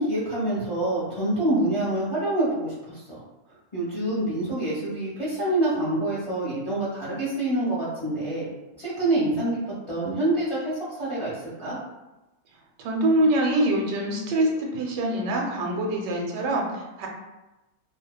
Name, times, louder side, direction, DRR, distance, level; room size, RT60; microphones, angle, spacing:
voice 1, 0.0-3.2 3.7-8.5 8.8-9.6 9.9-11.8, right 1 dB, 30° left, -9 dB, 0.7 m, -26 dB
voice 2, 12.8-17.1, right 1 dB, 85° right, 0 dB, 1.2 m, -24 dB
2.7 x 2.3 x 2.2 m, 1.0 s
omnidirectional pair, 1.8 m